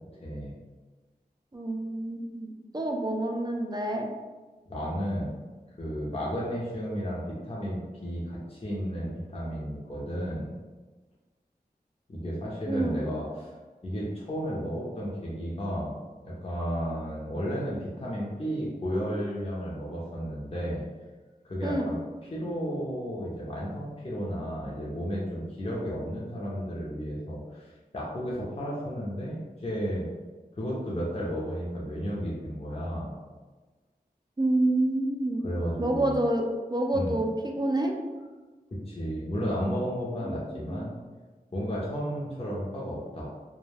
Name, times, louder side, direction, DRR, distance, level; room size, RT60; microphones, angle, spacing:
voice 1, 0.2-0.5 4.7-5.3 5.8-10.5 12.1-13.5 13.8-16.0 16.2-20.8 21.4-22.0 22.2-27.7 27.9-30.1 30.5-33.1 35.4-36.1 36.9-37.2 38.7-41.0 41.5-43.3, equal, 40° left, -6 dB, 0.6 m, -33 dB
voice 2, 1.5-4.1 12.7-13.0 21.6-21.9 34.4-35.4 35.8-37.9 40.2-40.4 40.7-40.9, right 1 dB, 25° right, 1 dB, 0.4 m, -28 dB
2.2 x 2.2 x 3.2 m, 1.3 s
wide cardioid pair, 50°, 16 cm